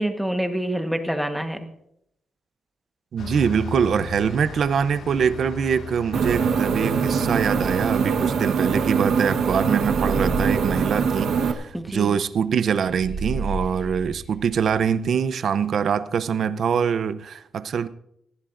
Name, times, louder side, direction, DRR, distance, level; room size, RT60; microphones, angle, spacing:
voice 1, 0.0-1.7 11.7-12.1, right 1 dB, ahead, 6 dB, 1.3 m, -26 dB
voice 2, 3.1-17.9, right 7 dB, 55° right, 13 dB, 0.6 m, -24 dB
Bus, 3.2-9.1, left 4 dB, 70° left, 1.7 m, -37 dB
sound 1, 6.1-11.5, right 6 dB, 70° right, 1.2 m, -23 dB
sound 2, 9.7-15.0, right 2 dB, 15° left, 4.2 m, -34 dB
19.0 x 15.5 x 2.6 m, 0.76 s
wide cardioid pair, 145°, 0 cm